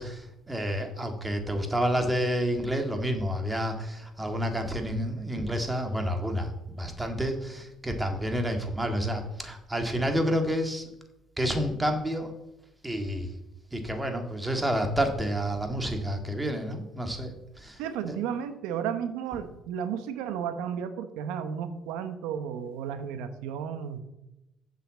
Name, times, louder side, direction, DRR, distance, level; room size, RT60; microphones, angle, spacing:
voice 1, 0.0-10.9 11.4-12.3 12.8-13.3 13.7-17.8 18.1-18.2, equal, 15° right, 5 dB, 1.8 m, -29 dB
voice 2, 17.8-24.0, right 8 dB, 90° right, 10 dB, 0.9 m, -33 dB
7.6 x 5.8 x 7.5 m, 0.92 s
supercardioid pair, 85°, 0 cm